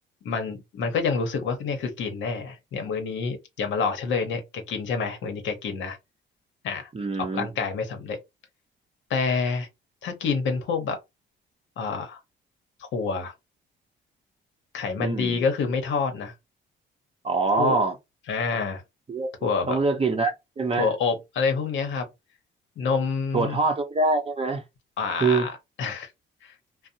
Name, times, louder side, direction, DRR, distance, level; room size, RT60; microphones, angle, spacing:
voice 1, 0.2-6.0 6.6-6.9 7.2-8.2 9.1-9.7 10.0-11.0 11.8-12.2 12.8-13.3 14.7-16.3 17.6-17.7 18.3-18.8 19.4-19.8 20.8-22.1 22.8-23.6 25.0-26.1 26.4-26.5, left 5 dB, 75° left, 0.8 m, -27 dB
voice 2, 6.9-7.5 15.0-15.4 17.2-17.9 19.1-19.3 19.7-20.9 23.3-24.6 25.2-25.5, right 3 dB, 30° right, 0.6 m, -24 dB
2.6 x 2.0 x 2.7 m
cardioid pair, 90°, 20 cm